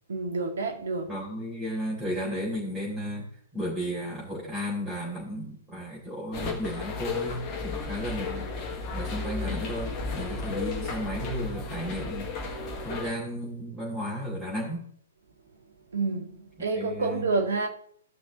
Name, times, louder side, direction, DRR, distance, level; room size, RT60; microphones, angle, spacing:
voice 1, 0.1-1.2 15.9-17.7, right 3 dB, 60° right, 1.7 m, -29 dB
voice 2, 1.1-3.3 3.5-8.5 8.9-12.3 12.8-14.8 16.7-17.2, equal, 15° right, 3.6 m, -34 dB
sound 1, 6.3-13.1, left 4 dB, 30° left, 1.7 m, -34 dB
16.0 x 6.2 x 2.7 m
figure-of-eight pair, 115°, 0 cm